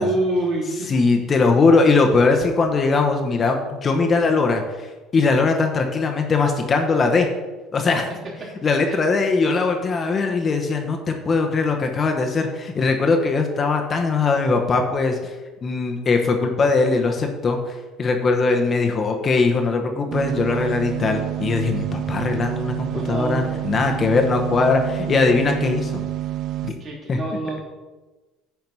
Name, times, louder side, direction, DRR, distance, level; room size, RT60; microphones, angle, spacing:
voice 1, 0.0-0.9 8.9-9.0 22.8-23.9 26.8-27.6, right 1 dB, 40° right, -4 dB, 3.1 m, -26 dB
voice 2, 0.9-7.3 7.7-8.1 8.6-15.3 15.6-26.1 26.7-26.8 27.1-27.2, left 4 dB, 30° left, 3 dB, 0.9 m, -20 dB
sound 1, 20.1-26.7, right 14 dB, 55° right, 0.4 m, -28 dB
9.2 x 4.7 x 5.5 m, 1.2 s
cardioid pair, 130°, 0 cm